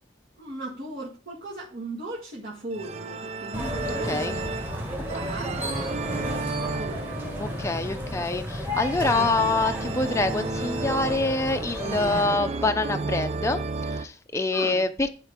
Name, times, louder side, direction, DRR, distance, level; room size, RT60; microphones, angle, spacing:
voice 1, 0.4-7.3 14.5-14.8, right 2 dB, 50° right, 1.9 m, -38 dB
sound 1, 2.7-14.1, right 3 dB, 35° right, 0.4 m, -33 dB
sound 2, 3.5-12.3, left 1 dB, 10° right, 1.7 m, -33 dB
voice 2, 3.9-4.4 5.2-5.3 7.4-15.1, left 2 dB, 15° left, 0.6 m, -26 dB
10.5 x 4.5 x 5.1 m
head